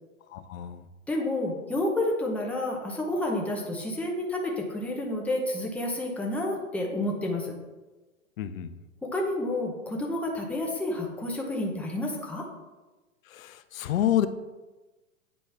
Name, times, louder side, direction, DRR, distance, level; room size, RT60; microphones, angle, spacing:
voice 1, 0.3-0.9 8.4-8.7 13.3-14.3, left 11 dB, 70° left, 11 dB, 0.7 m, -28 dB
voice 2, 1.1-7.5 9.0-12.5, left 1 dB, 5° left, -1 dB, 0.8 m, -30 dB
8.6 x 4.1 x 3.4 m, 1.1 s
hypercardioid pair, 130°, 43 cm